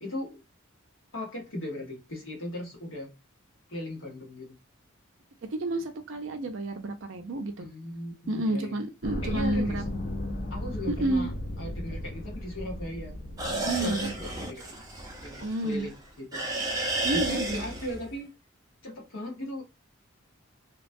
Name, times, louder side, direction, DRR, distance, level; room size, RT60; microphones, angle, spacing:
voice 1, 0.0-0.4 1.1-3.1 3.7-4.6 7.6-8.7 9.2-9.8 10.5-13.2 13.6-14.7 15.2-15.9 16.2-16.4 17.1-18.3 18.8-19.6, left 1 dB, 70° left, 1.1 m, -38 dB
voice 2, 5.5-7.7 8.3-9.8 10.9-11.3 13.7-14.1 15.4-15.9 17.0-17.6, right 2 dB, 65° right, 0.5 m, -30 dB
sound 1, 9.0-14.5, left 1 dB, 35° left, 0.5 m, -36 dB
sound 2, 13.4-16.0 16.3-18.1, right 1 dB, 15° right, 0.5 m, -32 dB
2.9 x 2.2 x 2.5 m
head